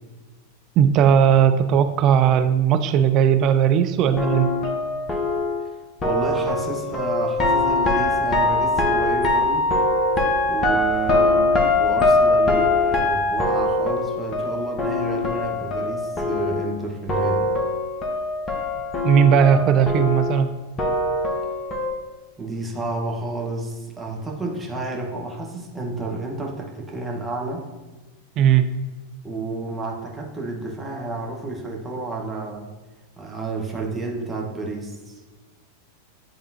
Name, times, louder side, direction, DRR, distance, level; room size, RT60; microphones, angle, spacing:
voice 1, 0.8-4.5 19.0-20.5 28.4-28.6, right 8 dB, 35° right, 9 dB, 0.4 m, -17 dB
sound 1, 4.1-16.8 17.1-21.9, left 2 dB, 25° left, 1.1 m, -22 dB
voice 2, 6.0-9.7 10.5-17.5 22.4-27.6 29.2-32.7 33.2-35.2, right 3 dB, 10° right, -2 dB, 1.2 m, -30 dB
10.0 x 3.6 x 2.8 m, 1.3 s
figure-of-eight pair, 90°, 0 cm